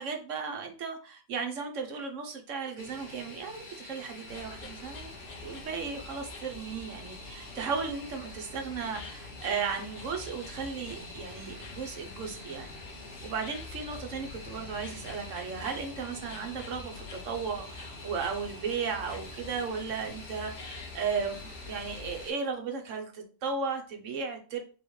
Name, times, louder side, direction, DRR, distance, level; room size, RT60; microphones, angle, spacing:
voice 1, 0.0-5.1 5.4-12.8 13.2-24.6, right 5 dB, 70° right, 4 dB, 1.1 m, -35 dB
Fixed-wing aircraft airplane, 2.8-22.3, left 2 dB, 45° left, 1.1 m, -47 dB
sound 1, 4.3-22.2, left 3 dB, 70° left, 1.2 m, -47 dB
3.9 x 3.5 x 3.1 m, 0.36 s
omnidirectional pair, 1.4 m